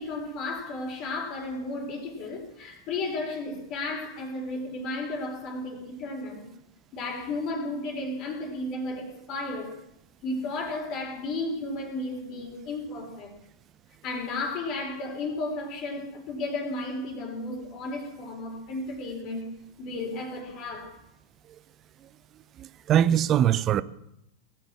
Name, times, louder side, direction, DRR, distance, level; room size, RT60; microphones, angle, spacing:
voice 1, 0.0-6.5 6.9-9.8 10.2-13.3 14.0-19.5 19.8-21.0, left 2 dB, 40° left, 4.0 m, -33 dB
voice 2, 22.6-23.8, right 10 dB, 30° right, 0.7 m, -22 dB
19.0 x 9.0 x 7.4 m
figure-of-eight pair, 90°, 0 cm